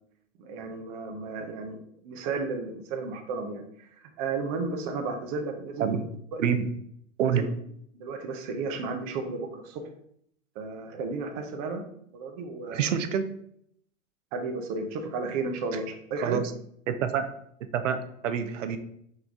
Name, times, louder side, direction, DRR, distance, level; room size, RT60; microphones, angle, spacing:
voice 1, 0.4-3.9 4.2-6.0 6.3-6.4 7.3-7.4 8.0-9.8 10.6-11.8 12.1-12.9 14.3-16.4, right 4 dB, 30° right, 5 dB, 0.5 m, -33 dB
voice 2, 6.4-6.7 7.2-7.5 12.7-13.3 15.7-15.8 16.2-16.4 16.9-17.3 17.7-18.8, right 8 dB, 70° right, 9 dB, 0.6 m, -27 dB
3.9 x 3.1 x 3.5 m, 0.68 s
hypercardioid pair, 135°, 39 cm